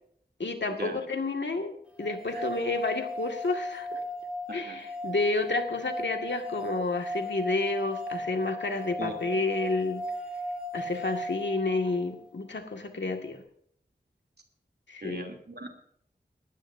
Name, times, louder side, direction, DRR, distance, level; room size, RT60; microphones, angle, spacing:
voice 1, 0.4-4.0 4.5-10.0 10.7-13.4 14.9-15.3, left 3 dB, 85° left, 4 dB, 2.0 m, -30 dB
sound 1, 2.0-12.1, equal, 5° right, 4.8 m, -36 dB
voice 2, 4.5-4.8 9.0-9.1 15.0-15.7, right 2 dB, 65° right, 2 dB, 3.0 m, -39 dB
20.0 x 15.5 x 2.7 m, 0.65 s
wide cardioid pair, 50°, 18 cm